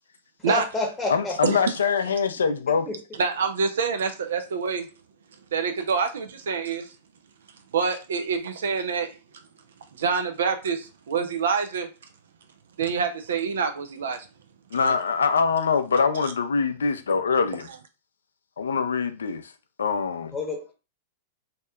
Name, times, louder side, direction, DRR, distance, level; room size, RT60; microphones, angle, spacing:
voice 1, 0.5-1.3 20.3-20.7, left 3 dB, 15° left, 0.8 m, -28 dB
voice 2, 1.1-2.9 14.7-17.7 18.6-19.5 19.8-20.4, left 5 dB, 85° left, 0.3 m, -24 dB
voice 3, 3.2-4.9 5.5-6.9 7.7-9.1 10.0-11.9 12.8-14.3 14.8-14.9 16.2-16.3, right 5 dB, 75° right, 0.3 m, -26 dB
2.7 x 2.2 x 2.2 m
hypercardioid pair, 110°, 0 cm